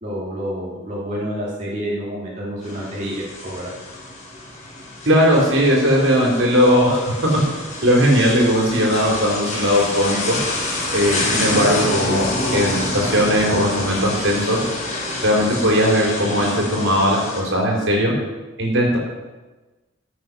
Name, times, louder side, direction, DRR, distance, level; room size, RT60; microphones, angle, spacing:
voice 1, 0.0-3.7, equal, 35° right, -6 dB, 2.9 m, -28 dB
sound 1, 2.6-17.4, left 2 dB, 35° left, 4.9 m, -27 dB
voice 2, 5.1-7.3 7.8-10.4 10.9-12.3 12.5-14.6 15.2-18.1 18.6-19.0, equal, 65° right, -1 dB, 4.2 m, -18 dB
15.0 x 8.4 x 6.3 m, 1.2 s
head